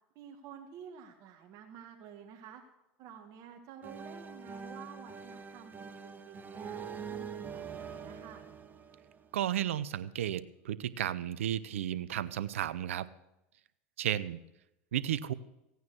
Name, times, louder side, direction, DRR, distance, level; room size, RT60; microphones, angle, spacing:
voice 1, 0.2-2.6 3.0-6.8 7.1-8.4, right 8 dB, 55° right, 3 dB, 1.9 m, -50 dB
sound 1, 3.8-9.6, right 6 dB, 25° right, 1.3 m, -44 dB
voice 2, 9.3-13.1 14.0-14.4 14.9-15.3, right 11 dB, 85° right, 16 dB, 0.7 m, -33 dB
16.0 x 9.4 x 6.2 m, 0.88 s
hypercardioid pair, 90°, 7 cm